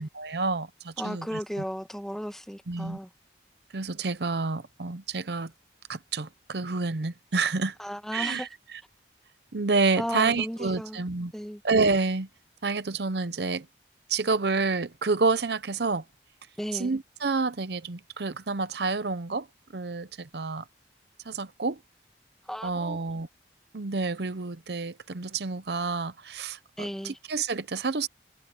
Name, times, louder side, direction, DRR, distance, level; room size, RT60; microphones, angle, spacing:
voice 1, 0.0-1.4 2.7-3.0 3.7-5.5 5.9-7.8 8.1-8.8 9.5-11.3 11.6-12.3 12.6-13.7 14.1-16.0 16.7-19.5 19.7-20.6 21.3-21.8 22.6-23.3 23.7-28.1, right 4 dB, 65° right, 0.7 m, -29 dB
voice 2, 1.0-3.1 7.8-8.5 10.0-11.0 11.3-11.6 16.6-16.9 22.4-23.0 26.8-27.2, equal, ahead, 1.5 m, -35 dB
head